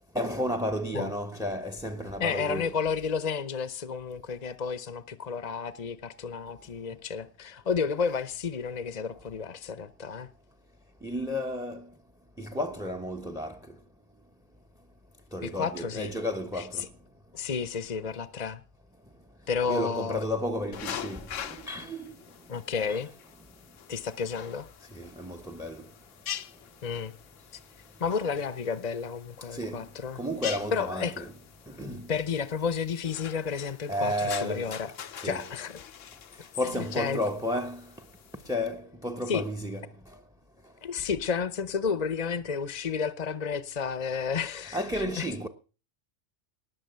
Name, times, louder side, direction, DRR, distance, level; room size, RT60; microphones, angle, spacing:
voice 1, 0.1-2.7 11.0-11.9 12.4-13.8 15.3-16.9 19.7-22.2 22.9-23.0 24.9-25.9 29.5-29.9 30.1-31.3 31.7-32.1 33.9-34.8 35.2-35.5 36.4-37.9 38.4-39.9 44.7-45.5, left 1 dB, 5° right, 0.9 m, -32 dB
voice 2, 2.2-10.3 15.4-16.1 17.3-18.6 19.5-20.2 22.5-23.1 23.9-24.7 26.8-27.1 28.0-30.2 30.7-31.1 32.1-34.9 35.2-35.8 36.8-37.2 39.3-39.4 40.8-45.3, left 6 dB, 35° left, 0.8 m, -31 dB
sound 1, 20.7-38.5, left 9 dB, 90° left, 1.2 m, -44 dB
19.0 x 7.1 x 6.8 m
omnidirectional pair, 1.3 m